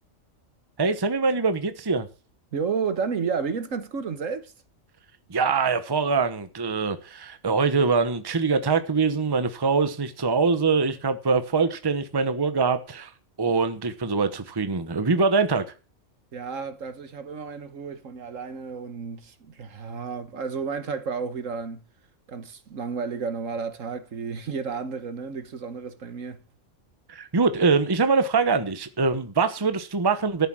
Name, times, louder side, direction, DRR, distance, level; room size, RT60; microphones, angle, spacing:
voice 1, 0.8-2.1 5.3-13.1 13.4-15.6 27.1-30.5, right 4 dB, 20° right, 0.9 m, -23 dB
voice 2, 2.5-4.5 16.3-21.8 22.3-26.4, right 5 dB, 70° right, 1.7 m, -32 dB
13.5 x 7.4 x 6.2 m
omnidirectional pair, 1.4 m